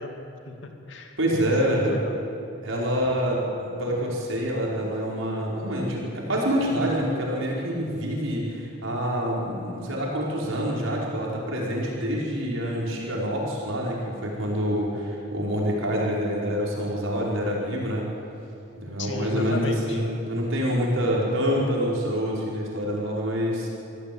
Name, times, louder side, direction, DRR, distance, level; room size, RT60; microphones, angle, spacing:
voice 1, 0.0-1.2 1.6-2.2 19.0-20.0, left 1 dB, 70° left, 4 dB, 2.5 m, -33 dB
voice 2, 1.2-1.9 2.6-18.1 18.8-23.7, equal, 85° right, -3 dB, 5.2 m, -26 dB
24.5 x 15.5 x 8.8 m, 2.7 s
head